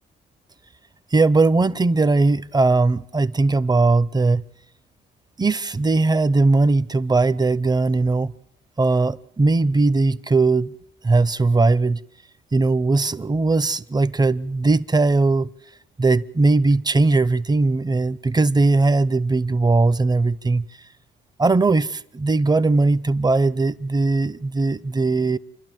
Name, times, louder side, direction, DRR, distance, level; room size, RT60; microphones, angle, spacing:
voice 1, 1.1-4.4 5.4-8.3 8.8-10.7 11.0-12.0 12.5-15.5 16.0-20.6 21.4-25.4, right 3 dB, 20° right, 0.7 m, -19 dB
29.0 x 12.0 x 9.2 m
cardioid pair, 90°, 20 cm